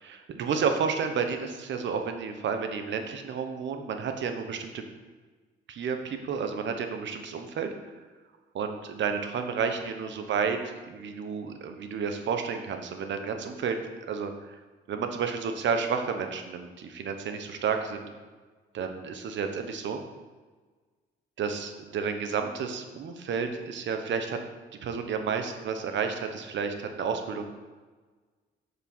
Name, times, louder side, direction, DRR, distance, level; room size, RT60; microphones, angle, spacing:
voice 1, 0.3-4.8 5.7-7.7 8.5-10.6 10.8-13.8 14.1-14.6 14.9-18.1 18.7-20.0 21.4-24.4 24.8-27.4, right 6 dB, 70° right, 6 dB, 1.2 m, -31 dB
7.2 x 6.7 x 6.2 m, 1.4 s
cardioid pair, 90°, 20 cm